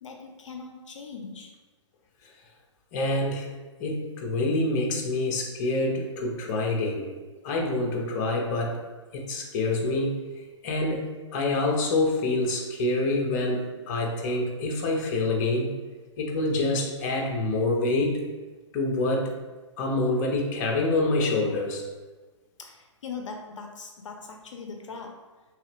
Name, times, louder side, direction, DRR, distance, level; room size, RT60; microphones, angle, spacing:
voice 1, 0.0-1.5 22.6-25.2, left 5 dB, 75° left, 3 dB, 0.4 m, -40 dB
voice 2, 2.9-3.5 3.8-7.1 7.4-8.8 9.1-10.1 10.6-15.7 16.2-18.2 18.7-19.3 19.8-21.8, left 2 dB, 35° left, 0 dB, 0.6 m, -26 dB
2.9 x 2.4 x 3.3 m, 1.3 s
hypercardioid pair, 130°, 16 cm